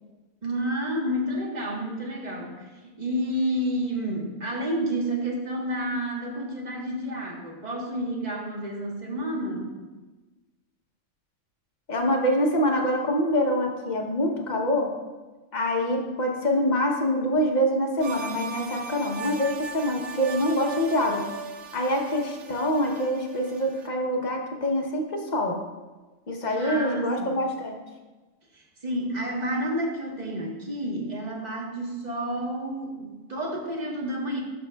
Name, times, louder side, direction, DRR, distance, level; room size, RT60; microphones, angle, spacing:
voice 1, 0.4-9.8 26.5-27.3 28.5-34.4, right 1 dB, 35° right, -1 dB, 1.2 m, -30 dB
voice 2, 11.9-14.9 15.5-21.2 21.7-25.6 26.3-27.7, equal, 40° left, 2 dB, 0.9 m, -25 dB
sound 1, 18.0-23.9, right 4 dB, 65° right, 0.9 m, -38 dB
11.5 x 6.4 x 2.3 m, 1.2 s
omnidirectional pair, 1.5 m